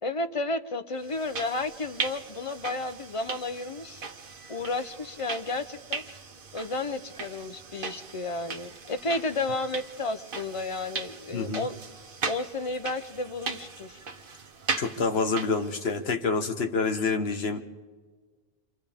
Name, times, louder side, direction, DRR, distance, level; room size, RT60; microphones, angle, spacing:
voice 1, 0.0-4.0 4.5-6.0 6.5-11.8 12.2-14.0, left 2 dB, 35° left, 10 dB, 0.7 m, -32 dB
sound 1, 1.0-16.0, right 4 dB, 60° right, 1.1 m, -38 dB
voice 2, 11.3-11.7 14.8-17.6, left 4 dB, 75° left, 6 dB, 1.5 m, -27 dB
28.5 x 25.5 x 3.6 m, 1.5 s
omnidirectional pair, 1.1 m